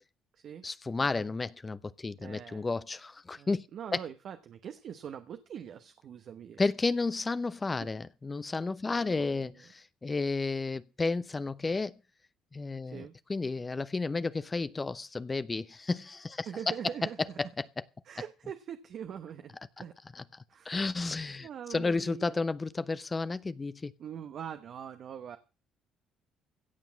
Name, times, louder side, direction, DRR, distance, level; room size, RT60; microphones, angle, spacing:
voice 1, 0.6-3.6 3.9-4.0 6.6-12.0 12.5-17.8 20.1-20.2 20.6-23.9, left 3 dB, 25° left, 0.7 m, -32 dB
voice 2, 2.2-2.7 3.4-6.6 8.9-9.5 12.9-13.1 16.5-17.2 18.1-19.9 20.5-20.7 21.4-22.4 24.0-25.4, right 8 dB, 60° right, 1.0 m, -43 dB
16.5 x 5.9 x 7.3 m
hypercardioid pair, 60°, 0 cm